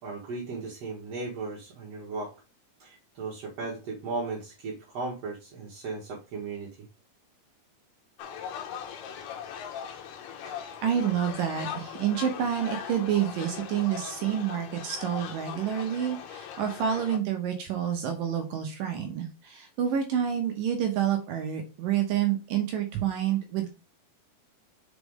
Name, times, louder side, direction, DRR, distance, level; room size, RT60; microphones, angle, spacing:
voice 1, 0.0-2.3 2.8-6.9, right 3 dB, 55° right, -4 dB, 2.0 m, -36 dB
sound 1, 8.2-17.2, left 8 dB, 80° left, 2.9 m, -40 dB
voice 2, 10.5-23.7, right 9 dB, 75° right, 4 dB, 2.2 m, -28 dB
6.1 x 4.7 x 3.6 m, 0.30 s
omnidirectional pair, 4.6 m